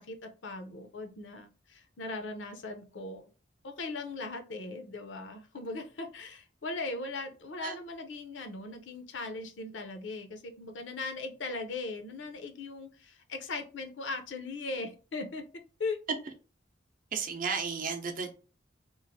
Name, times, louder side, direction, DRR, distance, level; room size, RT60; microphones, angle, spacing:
voice 1, 0.0-3.3 3.6-15.4 15.8-16.0, left 3 dB, 75° left, 6 dB, 0.6 m, -39 dB
voice 2, 17.1-18.3, right 5 dB, 45° right, 5 dB, 0.5 m, -33 dB
3.1 x 2.5 x 2.6 m, 0.35 s
head